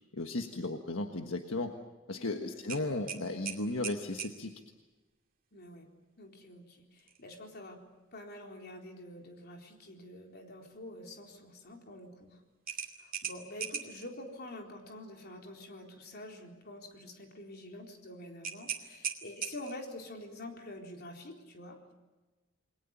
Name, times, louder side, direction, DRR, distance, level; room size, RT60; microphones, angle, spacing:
voice 1, 0.1-1.7 2.1-4.5, left 2 dB, 75° left, 5 dB, 1.5 m, -35 dB
voice 2, 2.1-2.5 5.5-5.9 6.2-7.8 8.1-12.4 12.7-21.9, left 1 dB, 55° left, 2 dB, 4.1 m, -47 dB
sound 1, 2.7-4.4 7.0-7.2 7.6-7.7 12.7-14.1 18.4-19.9, right 7 dB, 45° right, 2.5 m, -39 dB
29.0 x 21.5 x 7.2 m, 1.2 s
head